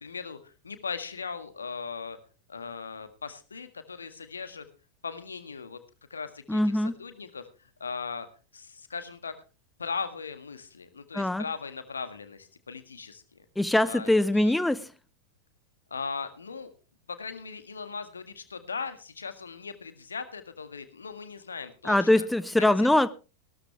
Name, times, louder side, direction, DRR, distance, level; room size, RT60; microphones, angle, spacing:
voice 1, 0.0-2.2 2.5-4.6 5.0-5.8 6.1-8.3 8.5-9.4 9.8-13.4 13.8-14.5 15.9-16.7 17.1-22.3 22.8-22.9, left 5 dB, 75° left, 1.7 m, -38 dB
voice 2, 6.5-7.0 11.1-11.4 13.6-14.9 21.8-23.1, left 1 dB, 5° left, 0.6 m, -23 dB
17.0 x 13.0 x 3.3 m
figure-of-eight pair, 90°, 0 cm